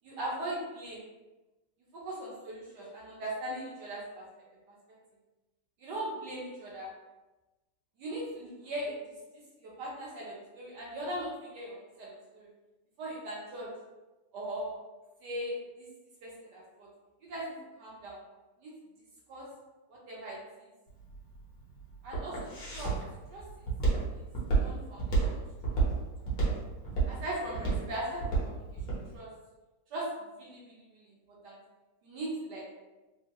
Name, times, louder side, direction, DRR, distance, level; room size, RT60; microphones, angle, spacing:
voice 1, 0.0-1.0 1.9-4.2 5.8-6.9 8.0-8.9 9.6-12.1 12.3-12.5 13.0-13.7 14.3-14.7 15.2-15.6 16.2-16.9 17.3-18.2 18.6-18.7 19.3-19.5 19.9-20.4 22.0-22.9 23.3-23.4 24.6-25.7 27.1-28.6 28.9-29.3 29.9-30.1 30.4-31.1 31.4-31.5 32.0-32.8, right 1 dB, 65° right, -4 dB, 1.2 m, -39 dB
Walk footsteps, 20.9-29.0, right 4 dB, 55° left, 1.1 m, -30 dB
3.5 x 2.1 x 2.9 m, 1.1 s
omnidirectional pair, 2.3 m